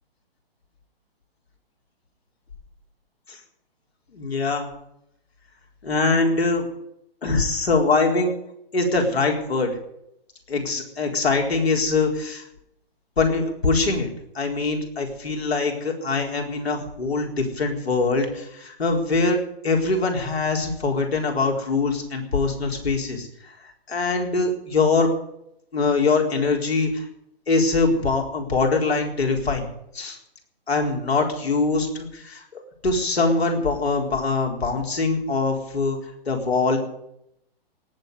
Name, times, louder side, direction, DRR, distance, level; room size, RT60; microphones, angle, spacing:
voice 1, 4.1-4.7 5.8-6.7 7.2-8.4 8.7-9.7 10.5-12.5 13.2-14.1 14.3-19.4 19.6-23.3 23.9-25.1 25.7-27.1 27.5-29.7 29.9-30.2 30.7-36.0 36.3-36.8, left 3 dB, 80° left, 2 dB, 4.3 m, -23 dB
18.5 x 7.5 x 9.8 m, 0.78 s
hypercardioid pair, 135°, 31 cm